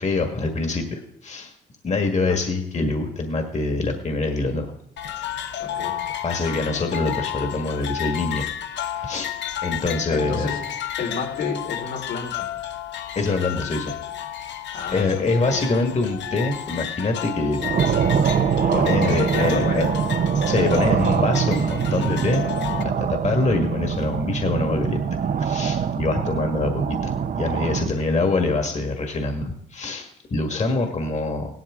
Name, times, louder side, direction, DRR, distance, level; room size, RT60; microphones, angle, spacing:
voice 1, 0.0-1.5 1.8-4.7 5.0-5.6 6.2-8.4 9.0-9.3 9.6-10.5 13.1-13.9 14.9-17.6 18.7-19.9 20.5-22.4 22.8-25.0 25.4-31.5, left 3 dB, 35° left, 4 dB, 1.7 m, -25 dB
sound 1, 5.0-22.8, left 11 dB, 65° left, 1.0 m, -32 dB
voice 2, 5.6-5.9 10.1-12.5 14.7-15.7 18.9-19.9, left 5 dB, 85° left, -1 dB, 4.3 m, -31 dB
sound 2, 17.6-27.9, right 7 dB, 45° right, 0.8 m, -23 dB
17.0 x 12.0 x 3.7 m, 0.75 s
cardioid pair, 90°, 20 cm